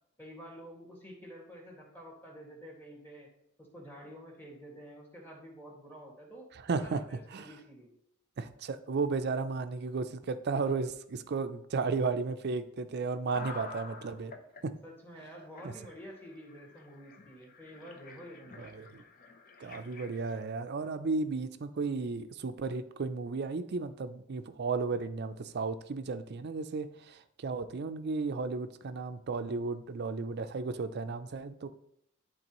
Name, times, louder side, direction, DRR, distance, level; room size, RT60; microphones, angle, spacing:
voice 1, 0.2-3.3 3.6-7.9 14.8-18.7, equal, 10° left, -3 dB, 1.8 m, -49 dB
voice 2, 6.7-7.0 7.3-7.5 8.4-14.3 14.6-14.7 15.6-15.7 18.6-19.0 19.6-31.7, right 4 dB, 50° right, 10 dB, 0.5 m, -34 dB
sound 1, 13.3-14.6 15.2-15.3 15.5-20.4, left 3 dB, 45° left, 0.7 m, -49 dB
10.5 x 3.8 x 3.0 m, 0.73 s
head